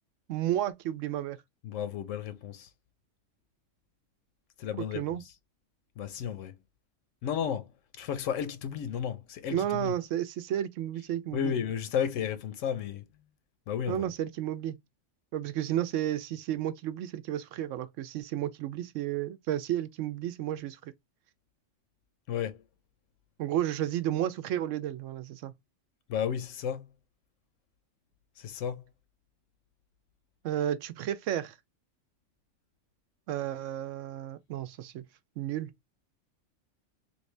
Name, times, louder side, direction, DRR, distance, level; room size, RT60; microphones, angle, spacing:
voice 1, 0.3-1.4 4.9-5.2 9.5-11.5 13.9-14.8 15.3-20.9 23.4-25.5 30.4-31.5 33.3-35.0 35.4-35.7, right 12 dB, 85° right, 0.9 m, -32 dB
voice 2, 1.6-2.7 4.6-5.2 6.0-6.6 7.2-9.9 11.3-13.1 13.7-14.1 22.3-22.6 26.1-26.9 28.4-28.8, left 8 dB, 85° left, 1.0 m, -33 dB
3.2 x 2.6 x 3.1 m
omnidirectional pair, 1.3 m